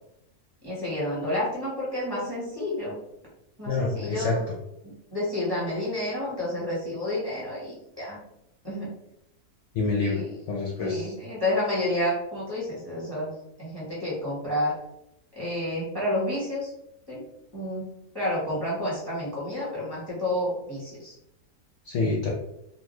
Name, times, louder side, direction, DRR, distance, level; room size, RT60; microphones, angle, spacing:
voice 1, 0.6-3.0 3.6-4.4 4.8-8.2 8.6-8.9 10.0-10.3 10.8-14.8 15.3-16.7 17.1-17.2 17.5-17.9 18.1-21.1, left 1 dB, 15° right, -8 dB, 1.2 m, -30 dB
voice 2, 3.7-4.4 9.7-10.2 10.5-11.1 21.8-22.3, left 3 dB, 65° left, -2 dB, 0.7 m, -27 dB
2.9 x 2.1 x 3.2 m, 0.81 s
omnidirectional pair, 1.6 m